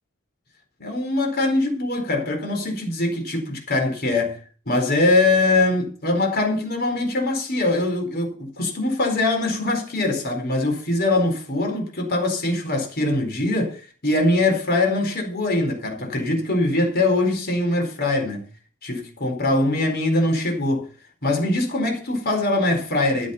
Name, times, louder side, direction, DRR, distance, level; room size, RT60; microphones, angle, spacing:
voice 1, 0.8-4.4 4.7-18.4 18.8-20.9 21.2-23.3, left 2 dB, 50° left, 4.5 m, -22 dB
14.0 x 9.6 x 5.8 m
head